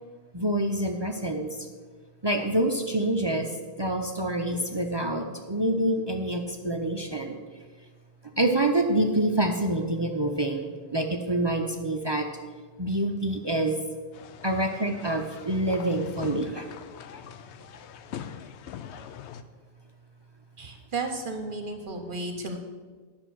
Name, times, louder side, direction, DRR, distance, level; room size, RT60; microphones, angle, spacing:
voice 1, 0.3-1.6 2.2-3.5 3.8-7.4 8.4-12.3 12.8-13.8 14.4-16.7, right 1 dB, 35° right, 4 dB, 0.4 m, -26 dB
sound 1, 14.1-19.4, left 9 dB, 75° left, 0.8 m, -42 dB
voice 2, 20.6-22.6, right 3 dB, 50° right, 5 dB, 0.9 m, -33 dB
10.0 x 6.1 x 6.1 m, 1.5 s
omnidirectional pair, 1.2 m